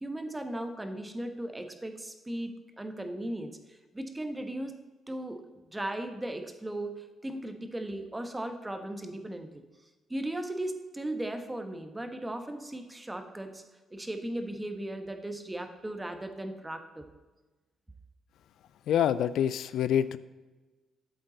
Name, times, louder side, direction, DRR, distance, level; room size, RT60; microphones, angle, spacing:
voice 1, 0.0-4.8 5.1-9.6 10.1-13.6 13.9-17.1, right 1 dB, 15° right, 7 dB, 1.1 m, -37 dB
voice 2, 18.9-20.2, left 9 dB, 75° left, 15 dB, 0.4 m, -26 dB
12.0 x 7.8 x 3.9 m, 1.2 s
cardioid pair, 90°, 0 cm